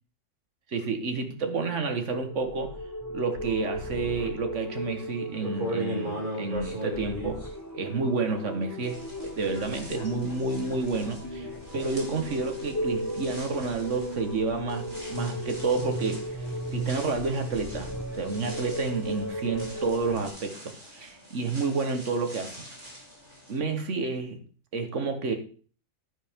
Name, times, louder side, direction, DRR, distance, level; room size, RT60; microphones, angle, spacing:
voice 1, 0.7-2.8 3.1-7.4 7.7-11.5 11.7-16.2 16.7-22.6 23.5-24.4 24.7-25.3, right 4 dB, 65° right, 6 dB, 1.7 m, -30 dB
sound 1, 2.1-20.2, equal, 15° left, 0.8 m, -36 dB
sound 2, 4.8-4.9 5.4-8.5 8.8-23.6, right 1 dB, 35° right, 3.2 m, -41 dB
sound 3, 8.9-20.3, equal, 35° left, 2.6 m, -48 dB
9.9 x 9.3 x 3.6 m, 0.42 s
omnidirectional pair, 1.4 m